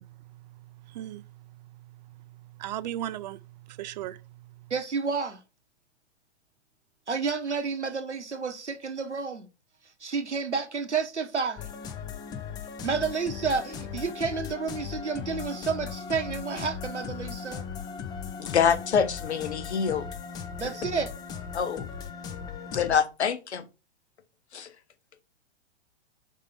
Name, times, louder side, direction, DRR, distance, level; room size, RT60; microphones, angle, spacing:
voice 1, 0.2-4.7, right 12 dB, 40° right, 0.5 m, -39 dB
voice 2, 4.7-5.4 7.1-9.5 10.0-11.7 12.8-17.7 20.6-21.1, right 5 dB, 90° right, 1.2 m, -30 dB
sound 1, 11.6-23.0, left 6 dB, 10° left, 0.4 m, -38 dB
voice 3, 18.4-20.1 21.5-21.9 22.7-23.6 24.5-24.7, left 7 dB, 75° left, 1.0 m, -26 dB
5.5 x 3.7 x 4.9 m
figure-of-eight pair, 115°, 34 cm